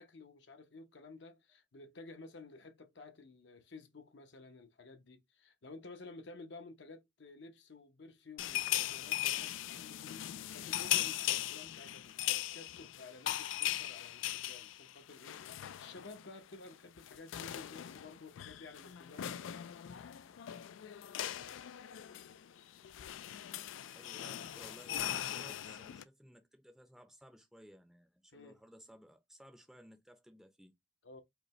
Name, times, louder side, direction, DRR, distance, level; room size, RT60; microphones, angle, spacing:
voice 1, 0.0-19.6 28.3-28.6 31.0-31.2, left 3 dB, 65° left, 0.8 m, -53 dB
sound 1, 8.4-16.3 16.5-16.7 17.0-26.0, left 13 dB, 85° left, 0.3 m, -39 dB
voice 2, 23.8-30.7, equal, ahead, 0.5 m, -58 dB
4.9 x 2.1 x 3.0 m
head